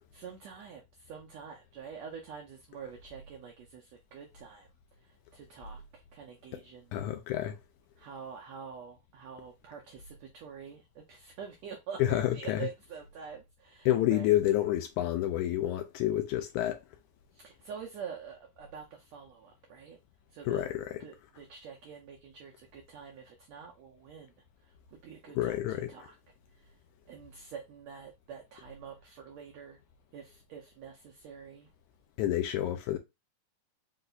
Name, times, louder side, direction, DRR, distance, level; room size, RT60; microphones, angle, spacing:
voice 1, 0.1-4.7 5.0-6.9 8.0-14.3 17.3-20.0 20.3-20.6 21.0-24.3 24.6-26.2 26.5-26.8 27.1-29.8 30.1-31.7, right 7 dB, 85° right, 1.5 m, -46 dB
voice 2, 6.9-7.6 12.0-12.7 13.9-16.8 20.5-21.0 25.4-25.9 32.2-33.0, left 13 dB, 80° left, 1.8 m, -29 dB
5.3 x 2.2 x 3.9 m
omnidirectional pair, 3.8 m